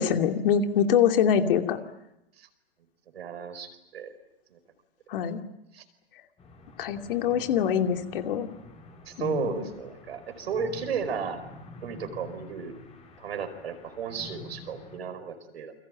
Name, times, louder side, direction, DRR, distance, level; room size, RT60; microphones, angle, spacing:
voice 1, 0.0-1.8 5.1-5.4 6.8-8.5 9.2-9.7, left 8 dB, 55° left, 6 dB, 2.6 m, -24 dB
voice 2, 3.1-4.1 4.5-4.6 5.7-5.8 9.1-11.4 11.8-12.7 13.2-15.7, right 6 dB, 70° right, 8 dB, 5.2 m, -34 dB
sound 1, 6.4-15.0, left 3 dB, 20° left, 4.9 m, -48 dB
29.0 x 22.5 x 9.0 m, 0.86 s
hypercardioid pair, 115°, 32 cm